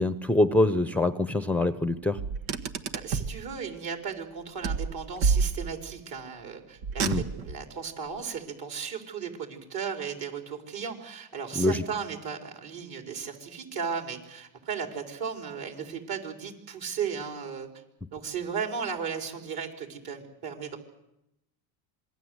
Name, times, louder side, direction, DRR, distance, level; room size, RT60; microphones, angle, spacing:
voice 1, 0.0-2.2 7.0-7.2 11.6-11.8, left 2 dB, 5° left, 11 dB, 0.9 m, -24 dB
Car, 2.2-3.4 4.6-6.0 6.8-7.6, right 5 dB, 75° right, 1.7 m, -28 dB
voice 2, 2.9-17.7 18.1-20.8, right 6 dB, 50° right, 4 dB, 5.0 m, -35 dB
26.5 x 21.0 x 8.1 m, 0.85 s
supercardioid pair, 95°, 47 cm